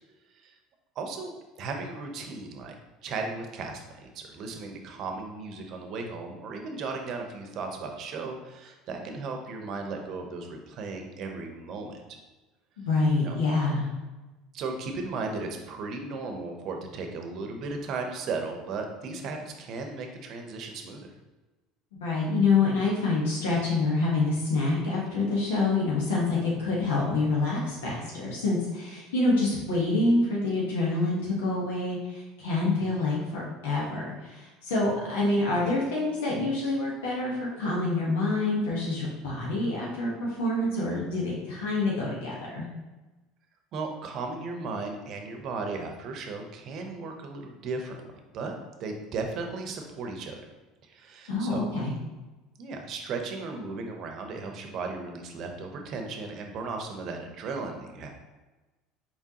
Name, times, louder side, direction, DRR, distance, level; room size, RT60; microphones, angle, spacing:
voice 1, 1.0-1.3 1.6-2.8 3.0-12.2 13.2-13.3 14.5-21.1 43.7-48.0 48.3-50.5 50.8-51.7 52.6-58.1, right 3 dB, 55° right, 4 dB, 0.7 m, -36 dB
voice 2, 12.8-13.9 22.0-42.6 51.3-51.9, left 3 dB, 90° left, -5 dB, 1.2 m, -27 dB
4.5 x 3.6 x 2.9 m, 1.2 s
supercardioid pair, 100°, 0 cm